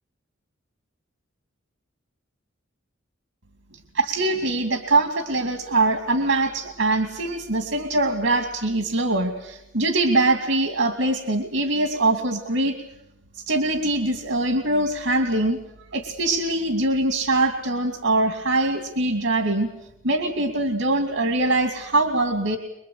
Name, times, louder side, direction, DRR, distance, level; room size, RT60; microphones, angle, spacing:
voice 1, 3.9-12.8 13.5-15.6 15.9-19.7 20.0-22.6, right 2 dB, 85° right, 5 dB, 2.6 m, -23 dB
25.5 x 22.5 x 8.6 m, 0.84 s
head